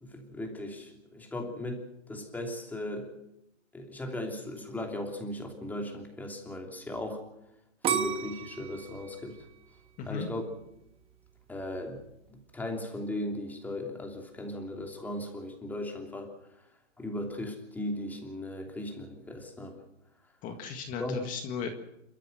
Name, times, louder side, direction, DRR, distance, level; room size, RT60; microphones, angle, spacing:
voice 1, 0.0-3.1 3.7-7.2 7.8-9.5 10.0-10.4 11.5-12.0 12.3-16.3 17.0-19.8 21.0-21.3, left 1 dB, 5° left, 2 dB, 3.0 m, -37 dB
sound 1, 7.8-10.8 11.3-11.8, right 8 dB, 15° right, 1.3 m, -33 dB
voice 2, 20.4-21.7, left 6 dB, 20° left, 6 dB, 1.9 m, -36 dB
29.0 x 13.5 x 7.9 m, 0.84 s
hypercardioid pair, 150°, 37 cm